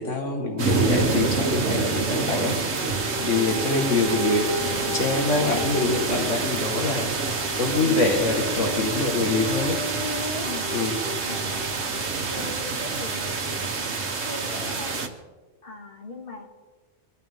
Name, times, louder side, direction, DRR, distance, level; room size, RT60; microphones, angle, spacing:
voice 1, 0.0-2.5 3.3-4.5 4.9-7.1 7.6-9.8 10.7-11.0, left 3 dB, 75° left, 2 dB, 2.0 m, -25 dB
sound 1, 0.6-15.1, right 4 dB, 65° right, 1.6 m, -27 dB
voice 2, 2.3-2.7 3.2-3.9 5.4-5.7 8.9-9.2 10.4-15.0 15.6-16.5, left 3 dB, 45° left, 0 dB, 2.4 m, -40 dB
sound 2, 2.8-11.9 12.6-12.7, left 3 dB, 5° right, 3.2 m, -36 dB
24.5 x 13.5 x 3.7 m, 1.3 s
omnidirectional pair, 1.3 m